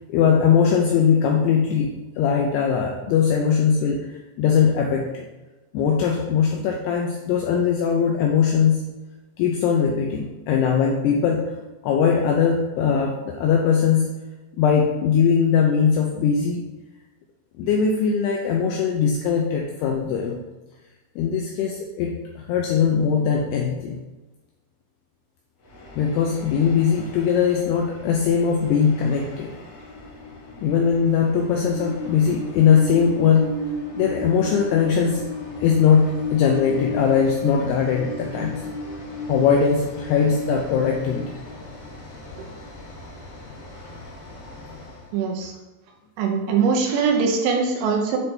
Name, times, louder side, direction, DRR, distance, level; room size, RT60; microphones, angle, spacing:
voice 1, 0.0-1.9 2.2-5.2 5.7-8.8 9.4-11.4 11.8-14.1 14.6-16.6 17.6-20.4 21.2-24.0 26.0-29.5 30.6-33.5 33.9-35.2 35.6-38.6 39.3-41.3, left 7 dB, 85° left, 0 dB, 2.4 m, -20 dB
Train, 25.6-45.1, left 2 dB, 45° left, 2.6 m, -35 dB
voice 2, 45.1-45.5 46.2-48.2, right 5 dB, 85° right, 2 dB, 3.2 m, -22 dB
8.3 x 4.4 x 3.3 m, 1.1 s
omnidirectional pair, 5.3 m